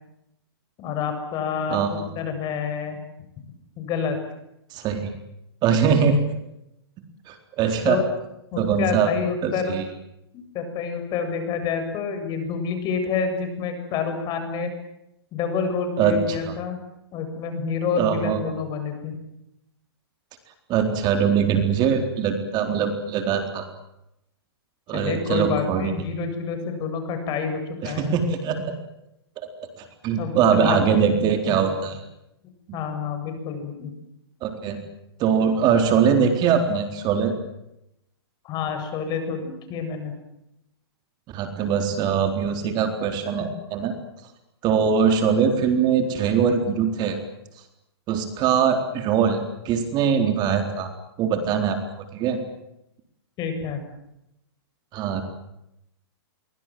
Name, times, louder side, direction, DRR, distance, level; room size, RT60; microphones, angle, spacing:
voice 1, 0.8-3.0 3.8-4.2 7.8-8.1 8.5-9.7 10.5-14.7 15.3-16.8 17.1-19.2 24.9-28.1 30.2-31.2 31.5-31.6 32.7-33.9 38.4-40.2 53.4-53.8, left 5 dB, 30° left, 7 dB, 7.5 m, -28 dB
voice 2, 1.7-2.1 4.7-5.1 5.6-6.2 7.3-8.0 8.6-9.1 9.4-9.8 16.0-16.5 18.0-18.4 20.7-23.7 24.9-25.9 27.8-28.7 29.8-32.0 34.4-34.8 35.2-37.3 41.3-43.9 44.6-47.2 48.1-50.9 51.2-51.8 52.1-52.4 54.9-55.2, right 7 dB, 30° right, 6 dB, 4.0 m, -22 dB
29.0 x 24.0 x 7.8 m, 0.83 s
hypercardioid pair, 125°, 13 cm